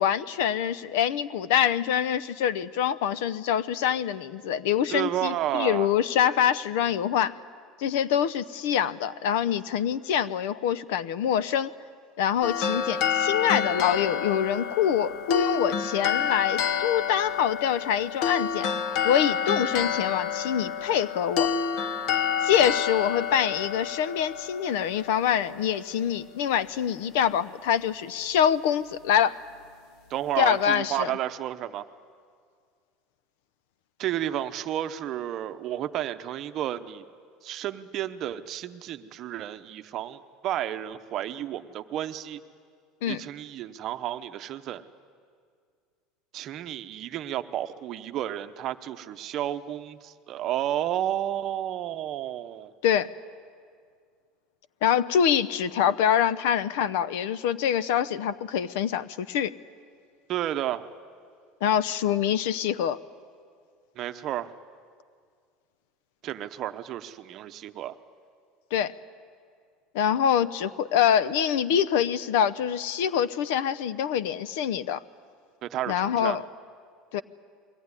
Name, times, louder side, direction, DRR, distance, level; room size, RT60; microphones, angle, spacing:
voice 1, 0.0-7.3 7.8-11.7 12.2-18.7 19.0-21.5 22.4-29.4 30.4-31.1 43.0-43.2 52.8-53.1 54.8-59.5 61.6-63.0 68.7-68.9 69.9-75.0 75.9-76.4 77.1-77.2, left 9 dB, 80° left, 18 dB, 0.7 m, -25 dB
voice 2, 4.9-5.9 30.1-31.8 34.0-37.0 37.4-42.4 43.1-44.8 46.3-52.7 60.3-60.8 64.0-64.5 66.2-68.0 75.6-76.4, right 12 dB, 40° right, 10 dB, 0.8 m, -31 dB
sound 1, 12.4-25.6, left 7 dB, 50° left, 1.0 m, -28 dB
22.5 x 17.5 x 9.7 m, 2.1 s
cardioid pair, 165°, 0 cm